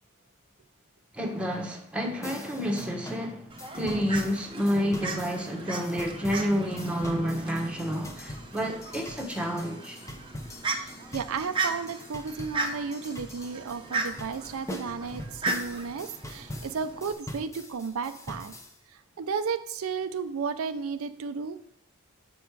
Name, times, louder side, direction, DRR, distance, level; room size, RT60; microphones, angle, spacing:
voice 1, 1.1-10.0, equal, 5° right, 1.1 m, -29 dB
sound 1, 2.2-18.8, left 1 dB, 15° left, 0.7 m, -43 dB
Fowl, 3.5-17.1, right 3 dB, 25° right, 0.7 m, -37 dB
voice 2, 10.7-18.5 18.9-21.6, right 5 dB, 90° right, 0.5 m, -33 dB
7.0 x 5.2 x 4.7 m
head